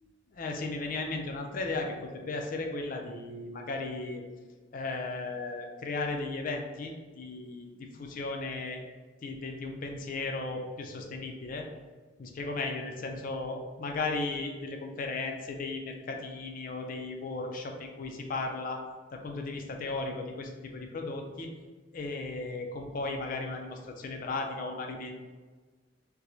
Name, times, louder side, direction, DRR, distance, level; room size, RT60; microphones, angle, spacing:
voice 1, 0.0-4.2 4.7-8.8 9.2-11.7 12.2-18.8 19.1-21.5 21.9-25.2, left 3 dB, 45° left, 3 dB, 0.4 m, -36 dB
4.5 x 2.0 x 2.7 m, 1.4 s
head